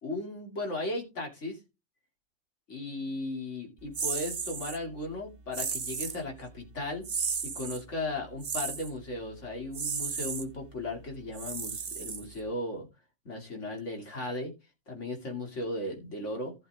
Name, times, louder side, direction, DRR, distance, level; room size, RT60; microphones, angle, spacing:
voice 1, 0.0-1.6 2.7-7.0 7.4-12.9 13.2-14.5 14.9-16.5, left 2 dB, 80° left, 2 dB, 3.1 m, -36 dB
sound 1, 3.9-4.8 5.5-6.2 7.0-7.8 8.4-8.9 9.7-10.4 11.3-12.5, right 5 dB, 40° right, 1.0 m, -34 dB
15.5 x 7.0 x 3.6 m, 0.27 s
omnidirectional pair, 1.2 m